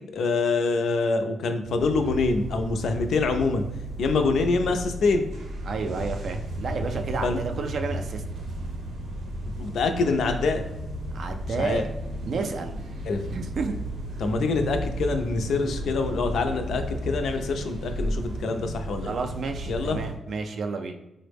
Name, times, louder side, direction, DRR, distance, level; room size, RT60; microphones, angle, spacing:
voice 1, 0.0-3.6 4.0-5.3 7.2-7.4 9.6-10.6 11.6-11.8 13.1-13.2 14.2-19.1 19.7-20.0, left 3 dB, 70° left, 6 dB, 0.4 m, -25 dB
sound 1, 1.6-18.9, left 1 dB, 5° right, 0.6 m, -38 dB
sound 2, 1.8-20.1, right 1 dB, 85° right, 0.6 m, -36 dB
voice 2, 5.6-8.2 11.1-11.9 12.2-12.8 13.3-13.8 19.0-21.0, right 4 dB, 50° right, 5 dB, 0.3 m, -31 dB
3.7 x 2.0 x 3.3 m, 0.92 s
wide cardioid pair, 160°, 0 cm